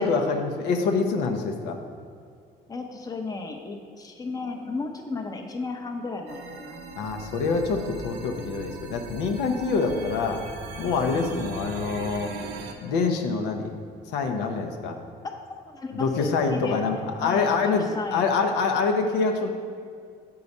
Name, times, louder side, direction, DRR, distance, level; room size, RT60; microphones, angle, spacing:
voice 1, 0.0-1.8 7.0-10.4 10.8-12.3 12.8-13.7 14.1-15.0 15.9-19.5, left 4 dB, 85° left, 4 dB, 0.7 m, -25 dB
voice 2, 2.7-6.8 11.0-11.6 15.2-15.3 15.7-18.2, left 3 dB, 20° left, 4 dB, 0.7 m, -34 dB
sound 1, 6.3-12.7, right 3 dB, 85° right, 0.7 m, -40 dB
7.1 x 4.7 x 5.3 m, 2.2 s
cardioid pair, 110°, 17 cm